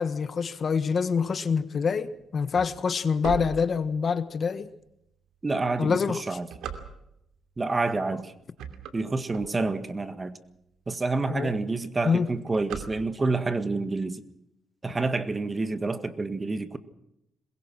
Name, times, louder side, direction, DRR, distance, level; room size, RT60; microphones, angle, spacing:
voice 1, 0.0-4.7 5.8-6.2 11.3-11.6 12.0-12.3, left 5 dB, 45° left, 1.4 m, -26 dB
sound 1, 2.0-4.3 4.9-5.0 5.6-7.4 8.0-8.2 8.5-10.0 10.5-10.6 10.9-11.0 11.3-11.6 11.9-13.5, right 8 dB, 90° right, 2.6 m, -39 dB
voice 2, 5.4-6.5 7.6-8.3 8.9-10.4 10.9-14.2 14.8-16.8, right 3 dB, 25° right, 1.8 m, -28 dB
22.0 x 21.5 x 6.2 m
cardioid pair, 90°, 0 cm